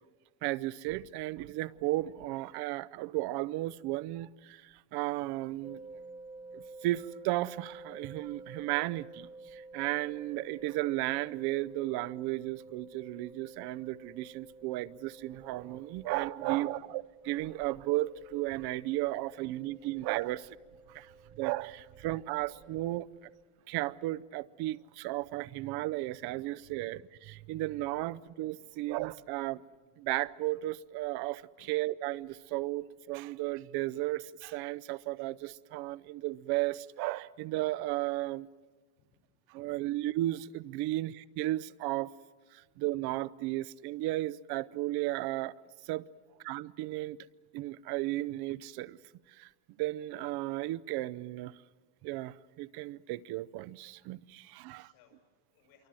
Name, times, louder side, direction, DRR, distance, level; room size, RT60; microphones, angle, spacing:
voice 1, 0.4-5.8 6.5-20.4 20.9-23.1 23.7-29.6 30.0-38.5 39.5-42.1 42.5-45.5 45.8-46.0 46.4-47.2 47.5-49.0 49.3-49.5 49.8-51.5 52.0-54.9, right 17 dB, 60° right, 0.7 m, -34 dB
sound 1, 5.6-23.4, right 2 dB, 10° right, 1.4 m, -52 dB
voice 2, 16.4-16.7 31.6-31.7 38.9-39.7 42.6-42.7 54.6-55.9, left 5 dB, 70° left, 7.0 m, -64 dB
27.0 x 24.0 x 7.6 m
cardioid pair, 165°, 43 cm